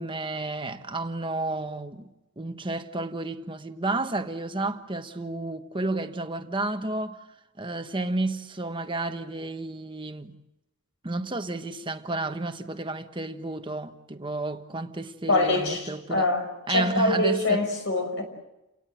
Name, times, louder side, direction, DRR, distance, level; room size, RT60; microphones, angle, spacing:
voice 1, 0.0-2.1 2.4-7.2 7.6-10.3 11.0-16.3 16.7-17.6, right 2 dB, 25° right, 1.3 m, -31 dB
voice 2, 15.3-18.2, left 2 dB, 65° left, 5.8 m, -24 dB
30.0 x 18.5 x 7.7 m
head